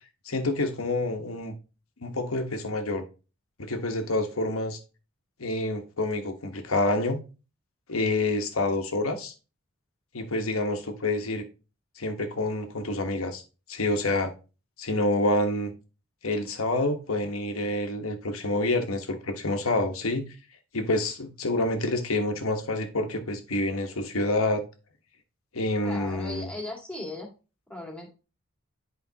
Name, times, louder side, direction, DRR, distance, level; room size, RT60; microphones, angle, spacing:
voice 1, 0.2-1.5 2.0-3.0 3.6-4.8 5.4-7.2 7.9-9.3 10.1-11.5 12.0-13.4 13.7-14.3 14.8-15.7 16.2-20.3 20.7-24.6 25.5-26.5, left 2 dB, 80° left, 5 dB, 1.2 m, -27 dB
voice 2, 25.8-27.3 27.7-28.1, left 2 dB, 5° left, -1 dB, 2.0 m, -37 dB
10.5 x 5.1 x 2.8 m, 0.33 s
head